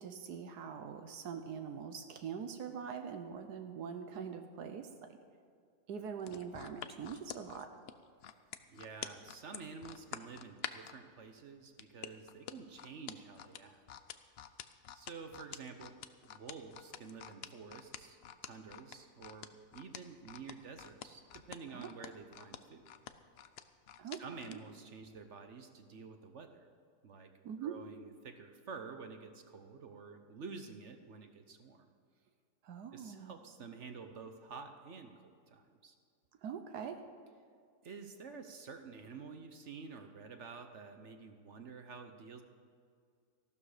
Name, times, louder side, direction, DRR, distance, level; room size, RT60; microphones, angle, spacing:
voice 1, 0.0-5.2 5.9-7.7 21.7-21.9 24.0-24.6 27.4-27.8 32.6-33.4 36.4-37.0, right 7 dB, 85° right, 7 dB, 1.4 m, -43 dB
sound 1, 6.2-11.0 11.8-24.6 25.0-25.2, left 9 dB, 65° left, 0.6 m, -47 dB
voice 2, 8.7-13.8 14.9-16.0 16.2-22.9 24.0-26.7 27.0-27.3 27.6-31.9 32.9-35.9 37.8-42.4, right 5 dB, 55° right, 6 dB, 1.0 m, -50 dB
14.5 x 12.5 x 5.0 m, 2.3 s
omnidirectional pair, 1.7 m